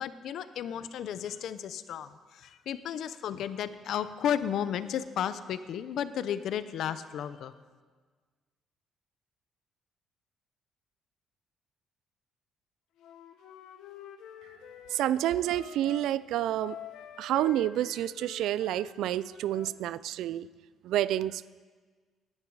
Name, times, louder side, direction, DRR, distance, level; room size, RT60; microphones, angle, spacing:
voice 1, 0.0-7.5, left 9 dB, 60° left, 13 dB, 0.6 m, -33 dB
Wind instrument woodwind instrument, 13.0-16.1 16.5-19.8, left 9 dB, 85° left, 1.3 m, -47 dB
voice 2, 14.9-16.8 17.2-20.5 20.8-21.5, right 12 dB, 75° right, 18 dB, 0.3 m, -29 dB
18.5 x 11.0 x 4.7 m, 1.5 s
cardioid pair, 165°, 0 cm